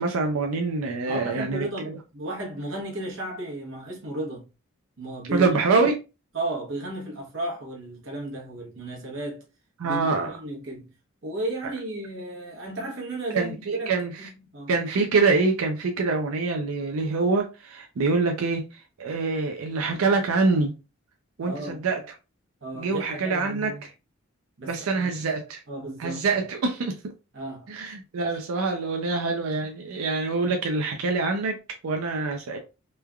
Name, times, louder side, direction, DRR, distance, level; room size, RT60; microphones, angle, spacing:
voice 1, 0.0-2.0 5.3-5.9 9.8-10.3 13.3-14.3 14.7-20.7 21.4-22.2 22.7-23.9 24.7-25.6 26.0-26.9 27.7-32.6, right 3 dB, 90° right, 0.4 m, -25 dB
voice 2, 1.1-4.5 5.0-5.7 6.3-9.4 9.8-10.9 11.2-13.9 14.2-14.7 21.4-21.8 22.6-23.8 24.6-25.1 25.7-26.2 27.3-27.7, right 1 dB, 65° right, 1.0 m, -34 dB
3.1 x 2.3 x 2.2 m
head